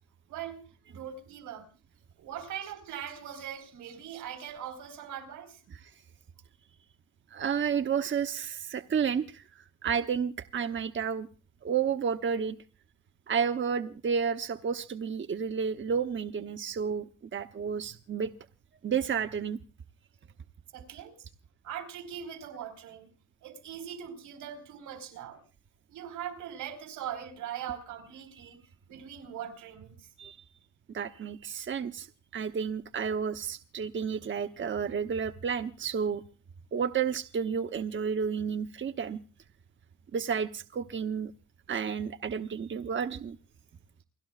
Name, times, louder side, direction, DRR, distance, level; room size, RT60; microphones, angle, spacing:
voice 1, 0.3-1.7 2.2-5.6 20.7-21.2 21.6-23.1 23.4-25.4 25.9-28.6 28.9-30.1, right 9 dB, 85° right, 4.6 m, -41 dB
voice 2, 7.3-11.3 11.6-12.6 13.3-18.3 18.8-19.6 30.2-30.4 30.9-32.1 32.3-36.2 36.7-39.2 40.1-41.3 41.7-43.4, right 7 dB, 40° right, 0.9 m, -31 dB
29.0 x 12.0 x 2.4 m
cardioid pair, 90°, 30 cm